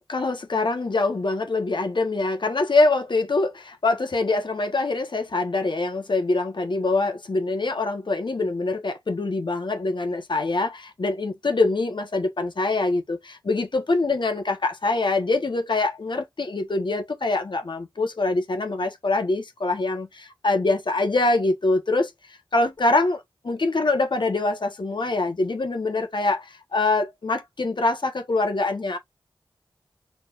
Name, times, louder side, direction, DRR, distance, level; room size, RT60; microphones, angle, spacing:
voice 1, 0.1-22.1 22.5-29.0, left 3 dB, 60° left, 1.1 m, -24 dB
4.4 x 3.6 x 2.5 m
wide cardioid pair, 60°, 9 cm